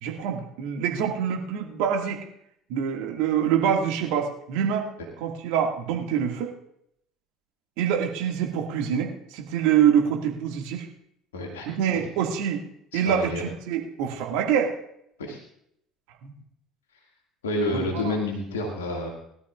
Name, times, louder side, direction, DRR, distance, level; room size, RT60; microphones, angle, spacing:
voice 1, 0.0-2.2 2.7-4.9 5.2-6.5 7.8-10.9 11.7-12.6 12.9-14.8 16.2-16.3 17.7-18.1, right 8 dB, 65° right, 2 dB, 1.9 m, -25 dB
voice 2, 11.3-12.1 12.9-13.4 15.2-15.4 17.4-19.1, left 2 dB, 75° left, 0 dB, 2.0 m, -29 dB
21.0 x 12.5 x 2.4 m, 0.73 s
figure-of-eight pair, 60°, 0 cm